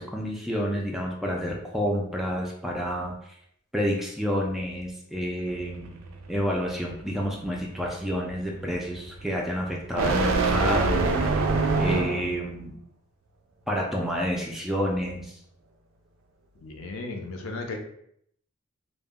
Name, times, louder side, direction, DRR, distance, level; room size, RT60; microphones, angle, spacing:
voice 1, 0.0-3.1 3.7-6.0 6.3-11.5 11.8-12.8 13.7-15.3, equal, ahead, -2 dB, 0.3 m, -29 dB
sound 1, 5.4-12.4, right 3 dB, 80° right, 0.4 m, -27 dB
voice 2, 16.6-17.8, left 3 dB, 75° left, 3 dB, 0.5 m, -35 dB
2.1 x 2.0 x 3.5 m, 0.70 s
head